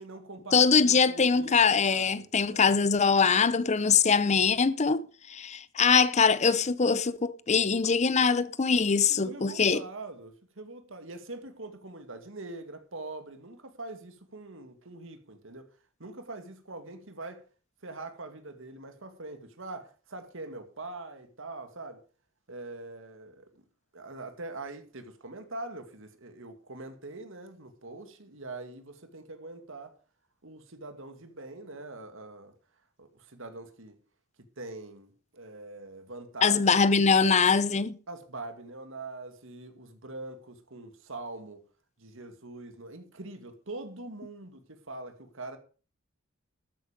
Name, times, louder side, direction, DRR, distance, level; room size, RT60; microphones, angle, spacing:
voice 1, 0.0-1.6 1.8-2.8 8.9-15.7 16.0-17.4 17.8-22.0 22.5-23.5 23.9-29.9 30.4-32.5 33.0-34.0 34.6-36.8 38.1-41.6 42.0-45.6, right 2 dB, 65° right, 2.2 m, -43 dB
voice 2, 0.5-5.0 5.3-9.8 36.4-38.0, left 5 dB, 35° left, 0.7 m, -23 dB
13.0 x 9.5 x 5.2 m
head